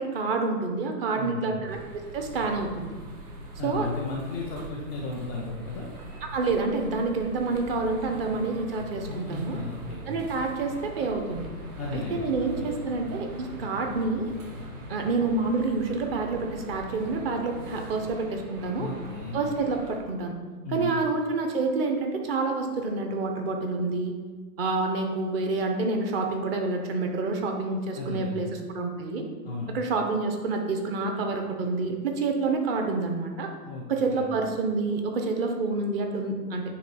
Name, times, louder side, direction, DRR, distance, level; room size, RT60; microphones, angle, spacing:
voice 1, 0.0-2.9 3.6-3.9 6.3-9.6 10.1-11.5 11.9-14.3 14.9-18.9 19.3-20.4 20.7-24.1 24.6-29.2 29.7-33.5 33.9-36.6, right 3 dB, 35° right, 3 dB, 1.2 m, -28 dB
voice 2, 1.2-1.6 3.6-5.9 9.1-10.3 11.8-12.8 18.8-19.4 20.6-20.9 28.0-28.4 29.4-29.7 33.6-34.3, left 3 dB, 10° right, -11 dB, 0.3 m, -35 dB
sound 1, 1.7-20.0, right 1 dB, 65° right, 2.2 m, -41 dB
9.3 x 3.2 x 5.9 m, 1.5 s
hypercardioid pair, 140°, 48 cm